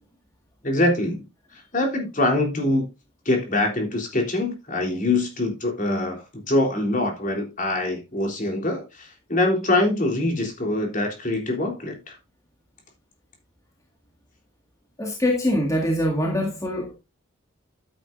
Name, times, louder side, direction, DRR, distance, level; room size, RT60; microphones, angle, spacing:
voice 1, 0.6-1.2 1.7-2.9 3.3-12.1, left 2 dB, 40° left, 3.6 m, -24 dB
voice 2, 15.0-16.9, equal, 15° left, 2.0 m, -23 dB
12.5 x 9.4 x 2.6 m
head